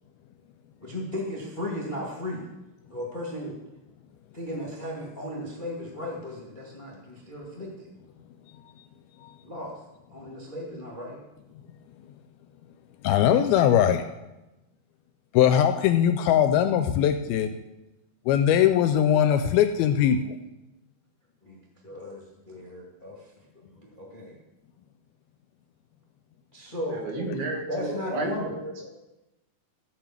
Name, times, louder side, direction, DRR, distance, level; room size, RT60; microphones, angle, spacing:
voice 1, 0.8-2.5 2.9-3.6 4.3-7.9 9.4-9.8 10.1-11.2 21.4-24.4 26.5-27.1 27.7-28.6, left 1 dB, 25° left, -4 dB, 1.2 m, -36 dB
voice 2, 13.0-14.0 15.3-17.6 18.3-20.4, left 10 dB, 80° left, 8 dB, 2.3 m, -21 dB
voice 3, 26.9-28.9, right 3 dB, 70° right, 0 dB, 3.8 m, -33 dB
15.0 x 5.7 x 7.4 m, 1.0 s
omnidirectional pair, 4.7 m